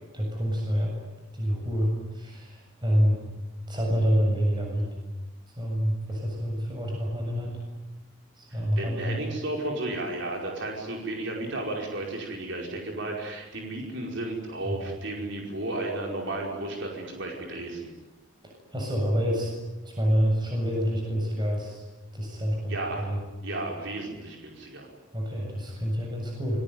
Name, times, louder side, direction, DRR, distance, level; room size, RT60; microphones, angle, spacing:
voice 1, 0.1-0.9 1.3-3.2 3.7-4.9 5.6-7.6 8.4-9.1 14.6-14.8 18.7-19.5 19.8-21.8 22.1-23.2 25.1-26.6, equal, 20° right, 0 dB, 7.3 m, -27 dB
voice 2, 8.8-17.8 22.7-23.1 23.4-24.9, right 2 dB, 60° right, 0 dB, 5.1 m, -33 dB
27.0 x 23.0 x 9.5 m, 1.1 s
head